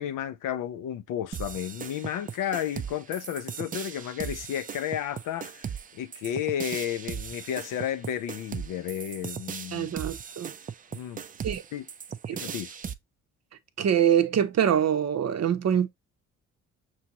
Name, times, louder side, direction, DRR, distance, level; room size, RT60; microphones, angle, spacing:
voice 1, 0.0-9.9 10.9-11.2 11.7-11.9 12.3-12.7, left 10 dB, 60° left, 0.5 m, -32 dB
sound 1, 1.3-12.9, right 7 dB, 25° right, 0.4 m, -38 dB
voice 2, 9.7-10.5 11.4-11.6 12.3-12.4 13.8-15.9, right 9 dB, 45° right, 0.7 m, -24 dB
6.1 x 2.6 x 2.9 m
hypercardioid pair, 50°, 37 cm